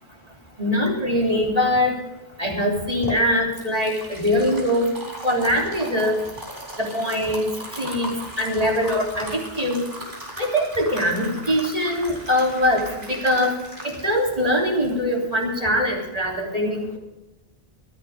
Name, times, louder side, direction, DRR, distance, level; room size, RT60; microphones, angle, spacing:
voice 1, 0.6-2.0 2.4-4.9 5.2-6.2 6.8-7.5 7.8-8.1 8.4-9.8 10.4-13.5 13.8-17.0, left 1 dB, 35° right, -1 dB, 3.5 m, -22 dB
sound 1, 2.6-15.6, right 1 dB, 55° right, 4.8 m, -38 dB
25.0 x 10.0 x 3.6 m, 0.98 s
omnidirectional pair, 1.0 m